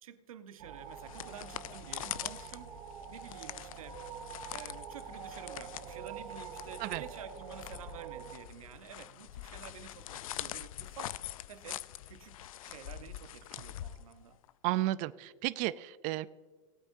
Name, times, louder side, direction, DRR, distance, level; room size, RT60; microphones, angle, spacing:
voice 1, 0.0-2.7 3.1-4.0 4.5-11.2 11.5-14.4, right 9 dB, 85° right, 10 dB, 1.0 m, -50 dB
sound 1, 0.6-8.4, right 6 dB, 65° right, 2.4 m, -46 dB
sound 2, 0.8-14.5, left 13 dB, 80° left, 0.4 m, -44 dB
voice 2, 14.6-16.3, right 16 dB, 45° right, 15 dB, 0.5 m, -33 dB
18.5 x 8.9 x 2.6 m, 1.4 s
hypercardioid pair, 115°, 17 cm